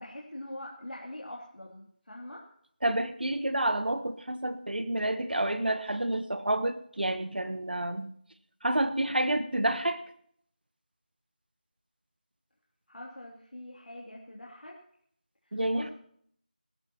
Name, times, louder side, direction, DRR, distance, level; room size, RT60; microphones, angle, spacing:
voice 1, 0.0-2.4 12.9-14.8 15.5-15.9, left 1 dB, 90° left, -3 dB, 2.9 m, -43 dB
voice 2, 2.8-8.1 8.6-10.0 15.5-15.9, right 1 dB, 80° right, 11 dB, 1.2 m, -29 dB
23.0 x 13.5 x 3.0 m, 0.65 s
figure-of-eight pair, 175°, 5 cm